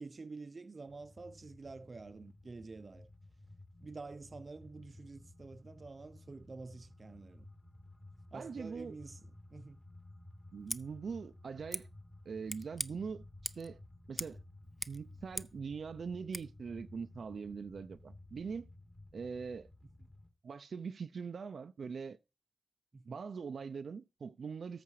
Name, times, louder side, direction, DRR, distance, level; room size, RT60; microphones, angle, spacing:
voice 1, 0.0-3.1 3.8-7.5 8.3-9.8 22.9-23.2, right 3 dB, 45° right, 0.6 m, -49 dB
sound 1, 0.8-20.3, left 1 dB, 30° left, 2.4 m, -55 dB
voice 2, 8.3-9.0 10.5-11.9 12.3-13.8 14.1-14.4 14.9-18.7 19.1-19.7 20.4-22.2 23.1-24.8, right 5 dB, 90° right, 0.5 m, -42 dB
Scissors, 10.6-10.8 11.7-11.8 12.5-12.9 13.4-13.7 14.1-14.4 14.6-15.6 16.3-16.4, equal, 5° left, 0.5 m, -41 dB
14.0 x 5.1 x 4.8 m
wide cardioid pair, 110°, 0 cm